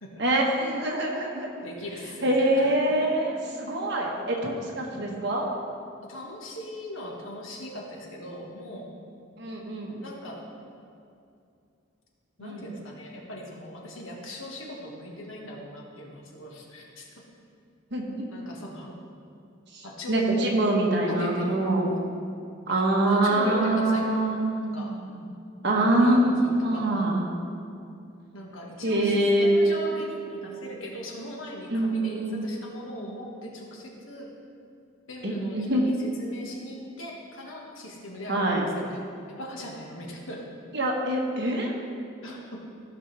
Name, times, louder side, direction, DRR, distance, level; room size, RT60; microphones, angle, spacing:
voice 1, 0.2-1.5 2.2-5.5 9.4-10.0 12.4-12.6 17.9-18.3 19.7-22.0 22.7-25.2 25.6-27.2 28.8-29.5 31.7-32.5 35.2-35.8 38.3-38.7 40.7-41.7, right 1 dB, 55° right, -1 dB, 1.4 m, -25 dB
voice 2, 1.6-3.1 4.9-5.2 6.1-8.9 10.0-10.5 12.4-17.1 18.3-19.0 19.8-20.6 21.1-21.5 22.6-24.2 24.7-25.0 25.7-27.1 28.3-34.3 35.1-39.1 39.4-40.5 42.2-42.6, equal, 80° left, -1 dB, 1.5 m, -39 dB
14.0 x 6.1 x 3.3 m, 2.5 s
head